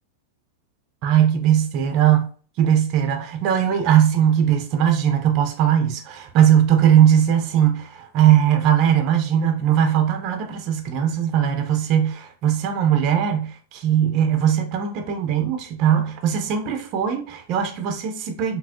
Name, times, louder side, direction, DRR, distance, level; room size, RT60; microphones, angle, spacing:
voice 1, 1.0-2.3 2.6-18.6, right 9 dB, 45° right, 0.6 m, -19 dB
4.0 x 2.0 x 2.8 m
hypercardioid pair, 110°, 0 cm